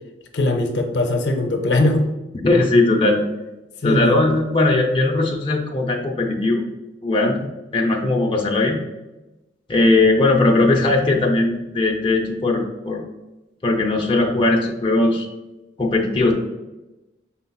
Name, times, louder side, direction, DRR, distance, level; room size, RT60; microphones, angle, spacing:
voice 1, 0.3-2.1 3.8-4.2, left 2 dB, 70° left, 4 dB, 0.6 m, -20 dB
voice 2, 2.4-3.2 3.8-6.6 7.0-7.5 7.7-8.8 9.7-13.0 13.6-15.3 15.8-16.3, left 2 dB, 30° left, 0 dB, 0.6 m, -18 dB
5.5 x 3.8 x 2.3 m, 1.0 s
head